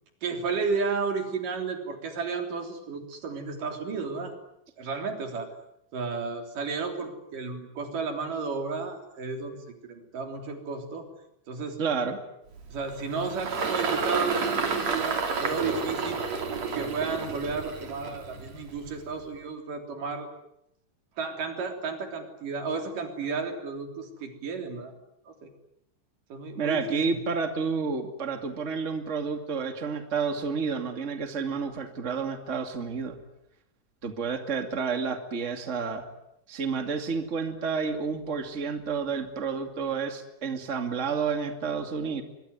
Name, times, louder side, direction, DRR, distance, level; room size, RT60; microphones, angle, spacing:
voice 1, 0.2-4.3 4.8-5.5 5.9-11.1 11.5-11.8 12.7-16.2 16.7-20.3 21.2-25.0 25.3-25.5 26.3-27.0, right 4 dB, 85° right, 5 dB, 5.2 m, -33 dB
voice 2, 11.8-12.2 26.6-33.2 34.0-36.1 36.5-42.2, right 5 dB, 25° right, 6 dB, 2.5 m, -30 dB
Engine, 12.5-19.1, right 4 dB, 55° right, 4.1 m, -31 dB
24.0 x 23.0 x 9.8 m, 0.80 s
omnidirectional pair, 3.7 m